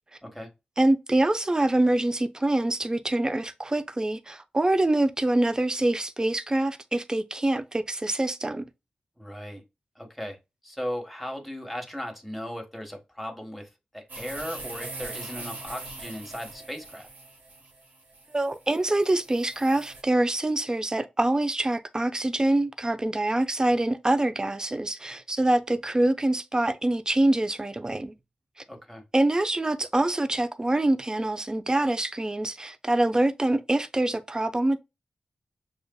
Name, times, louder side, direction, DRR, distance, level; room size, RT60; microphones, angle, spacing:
voice 1, 0.8-8.6 18.3-28.1 29.1-34.8, right 1 dB, 25° right, 0.5 m, -25 dB
voice 2, 9.2-9.6 9.9-10.4 10.6-17.1 28.7-29.0, equal, ahead, 1.4 m, -37 dB
sound 1, 14.1-20.0, right 2 dB, 75° right, 1.3 m, -42 dB
6.4 x 2.5 x 2.3 m
cardioid pair, 55°, 3 cm